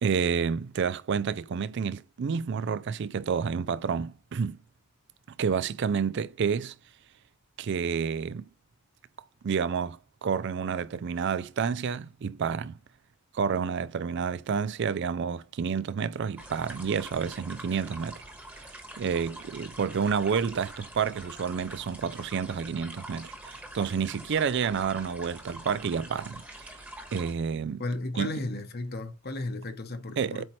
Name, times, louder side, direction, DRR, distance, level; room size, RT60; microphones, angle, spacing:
voice 1, 0.0-4.6 5.4-6.7 7.6-8.5 9.4-12.8 13.3-18.2 18.5-18.6 19.0-26.8 27.1-27.8 28.2-28.3 30.2-30.5, right 6 dB, 55° right, 0.4 m, -29 dB
sound 1, 16.4-27.3, right 1 dB, 10° right, 1.2 m, -45 dB
voice 2, 27.8-30.5, left 2 dB, 50° left, 1.0 m, -34 dB
7.8 x 4.4 x 3.1 m
head